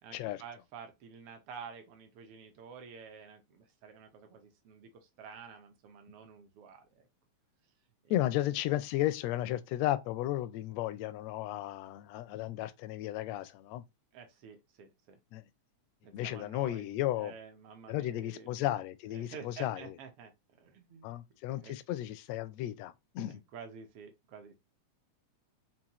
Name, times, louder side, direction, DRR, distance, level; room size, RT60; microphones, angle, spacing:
voice 1, 0.0-7.1 8.0-8.1 14.1-15.2 16.0-16.9 17.1-18.5 19.1-21.2 21.6-21.8 23.3-24.5, right 6 dB, 65° right, 1.5 m, -50 dB
voice 2, 8.1-13.8 15.3-15.4 16.1-17.3 17.9-20.0 21.0-23.4, left 14 dB, 80° left, 1.5 m, -34 dB
5.5 x 2.5 x 2.9 m
omnidirectional pair, 3.3 m